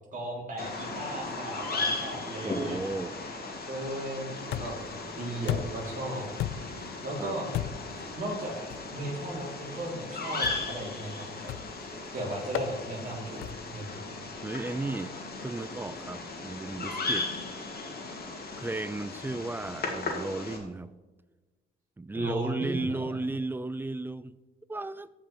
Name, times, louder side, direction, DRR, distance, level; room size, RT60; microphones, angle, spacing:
voice 1, 0.1-2.8 3.7-4.3 4.6-4.8 5.2-6.3 7.0-7.5 8.2-8.5 8.9-11.5 12.1-14.2 22.1-22.9, right 1 dB, 40° right, 3.8 m, -36 dB
Bird vocalization bird call bird song, 0.6-20.6, left 3 dB, 50° left, 2.3 m, -37 dB
voice 2, 2.4-3.2 7.2-7.4 14.4-15.2 15.4-17.3 18.6-20.9 22.0-24.4 24.7-25.1, right 2 dB, 10° right, 0.4 m, -34 dB
sound 1, 4.5-4.9 5.5-5.9 6.4-6.8 7.5-8.0 8.7-8.9 10.4-10.8 11.5-11.8 12.5-12.7 13.4-13.8, left 12 dB, 80° left, 0.5 m, -34 dB
15.0 x 5.4 x 4.5 m
cardioid pair, 90°, 20 cm